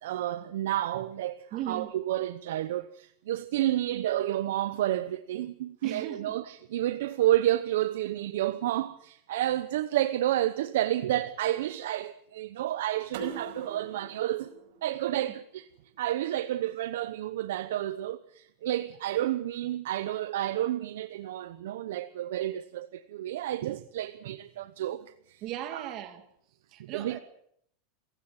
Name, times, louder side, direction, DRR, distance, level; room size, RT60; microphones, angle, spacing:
voice 1, 0.0-14.5 14.8-15.7 16.0-25.4 25.7-25.9 26.8-27.2, right 13 dB, 85° right, 0.9 m, -30 dB
voice 2, 1.5-1.9 5.8-6.4 25.4-26.2 26.7-27.2, right 12 dB, 40° right, 2.2 m, -37 dB
sound 1, 13.1-15.9, right 3 dB, 70° right, 5.0 m, -44 dB
27.5 x 15.5 x 7.6 m
supercardioid pair, 160°, 0 cm